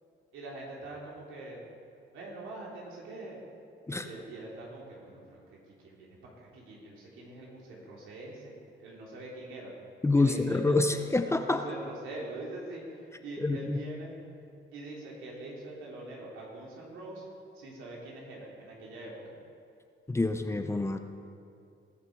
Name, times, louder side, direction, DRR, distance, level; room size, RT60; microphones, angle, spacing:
voice 1, 0.3-1.6 2.1-3.4 3.9-8.5 8.8-9.7 10.1-14.1 14.7-17.3 17.5-19.2, right 2 dB, 85° right, -3 dB, 3.1 m, -44 dB
voice 2, 10.0-11.7 13.4-13.8 20.1-21.0, left 2 dB, 15° left, 7 dB, 0.7 m, -27 dB
20.0 x 6.7 x 4.7 m, 2.5 s
cardioid pair, 90°, 20 cm